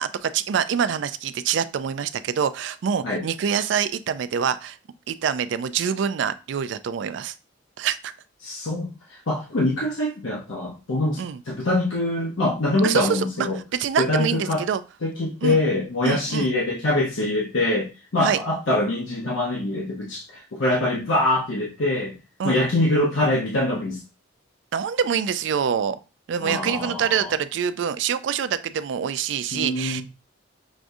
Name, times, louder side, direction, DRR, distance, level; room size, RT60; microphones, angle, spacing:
voice 1, 0.0-4.8 5.1-7.3 7.8-8.1 11.2-11.4 12.8-14.8 15.4-15.6 16.0-16.5 18.2-18.4 22.4-22.6 24.7-26.0 26.3-30.0, right 7 dB, 65° right, 13 dB, 0.3 m, -25 dB
voice 2, 8.4-13.6 14.0-14.6 15.0-22.2 22.4-24.0 26.4-27.3 29.5-30.0, left 1 dB, 80° left, -3 dB, 0.7 m, -24 dB
6.0 x 2.4 x 2.6 m, 0.31 s
head